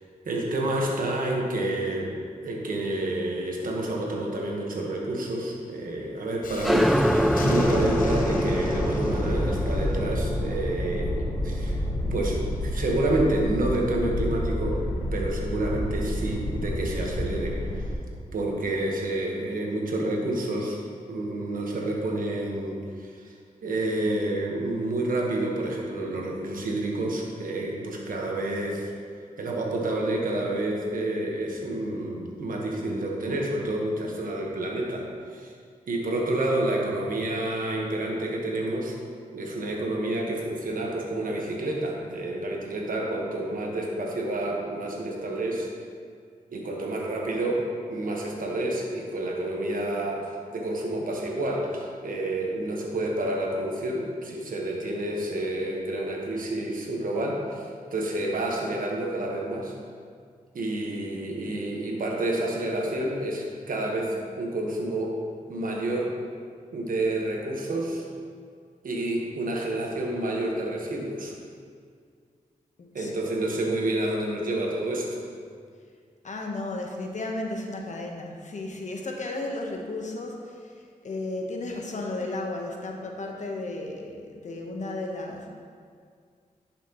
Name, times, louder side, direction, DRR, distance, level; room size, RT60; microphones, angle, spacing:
voice 1, 0.2-2.2 2.4-6.9 7.4-11.8 12.1-14.8 15.1-17.8 18.3-20.8 21.1-23.3 23.6-28.9 29.4-35.1 35.3-35.5 35.9-38.9 39.3-45.7 46.5-50.2 50.5-59.7 60.5-65.2 65.5-66.1 66.7-68.0 68.8-71.3 72.9-75.2, right 1 dB, 75° right, -1 dB, 1.3 m, -29 dB
Thunderstorm, 6.4-17.9, left 1 dB, 80° left, 0.9 m, -29 dB
sound 1, 6.6-13.9, equal, ahead, 0.3 m, -27 dB
voice 2, 72.8-73.1 76.2-85.5, left 2 dB, 60° left, 1 dB, 1.0 m, -34 dB
10.5 x 5.9 x 3.0 m, 2.1 s
cardioid pair, 70°, 14 cm